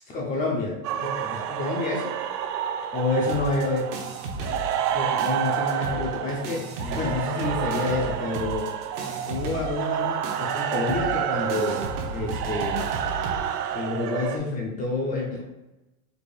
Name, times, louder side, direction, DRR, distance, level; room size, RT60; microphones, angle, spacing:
voice 1, 0.1-2.1 2.9-3.9 4.9-8.7 9.3-12.9 13.7-15.4, left 3 dB, 20° left, -1 dB, 0.5 m, -28 dB
sound 1, 0.8-14.4, right 10 dB, 85° right, 0.5 m, -29 dB
sound 2, 3.3-4.9 5.2-13.4, right 2 dB, 40° right, 0.8 m, -35 dB
4.3 x 2.4 x 3.2 m, 0.98 s
supercardioid pair, 135°, 46 cm